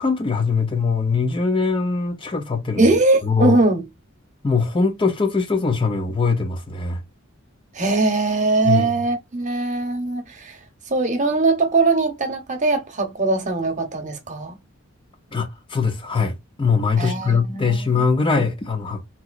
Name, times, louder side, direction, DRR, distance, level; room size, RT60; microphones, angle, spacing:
voice 1, 0.0-2.9 3.2-3.6 4.4-7.0 8.6-8.9 15.3-19.1, left 4 dB, 25° left, 0.5 m, -22 dB
voice 2, 2.8-3.8 7.7-10.6 10.9-14.6 17.0-18.0, right 3 dB, 35° right, 0.9 m, -21 dB
3.5 x 2.9 x 2.3 m
head